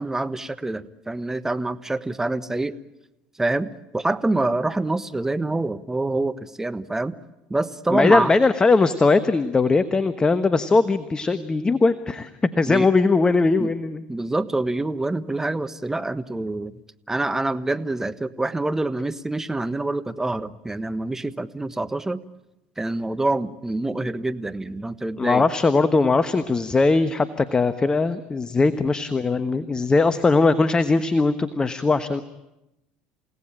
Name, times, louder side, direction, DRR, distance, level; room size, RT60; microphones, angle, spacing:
voice 1, 0.0-2.7 3.4-7.1 7.5-8.4 12.7-12.9 13.6-13.7 14.1-16.8 17.1-22.2 22.8-25.4 28.6-28.7, right 2 dB, 10° right, 12 dB, 1.2 m, -26 dB
voice 2, 7.9-14.0 25.2-32.2, left 3 dB, 20° left, 12 dB, 1.2 m, -20 dB
29.0 x 17.5 x 8.9 m, 0.93 s
hypercardioid pair, 75°, 4 cm